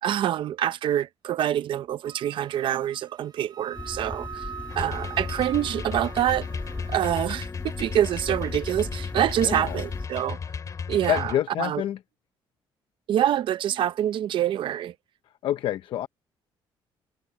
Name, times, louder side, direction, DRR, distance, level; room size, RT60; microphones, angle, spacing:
voice 1, 0.0-4.5 4.7-6.5 6.9-10.4 10.9-11.8 13.1-14.9, right 11 dB, 65° right, 0.7 m, -26 dB
Wind instrument woodwind instrument, 2.0-7.2, right 7 dB, 45° right, 6.2 m, -43 dB
sound 1, 3.7-10.1, left 2 dB, 15° left, 1.6 m, -37 dB
sound 2, 4.7-11.3, left 6 dB, 40° left, 2.3 m, -35 dB
voice 2, 9.4-9.8 11.1-12.0 15.4-16.1, left 11 dB, 70° left, 0.6 m, -27 dB
cardioid pair, 125°, 9 cm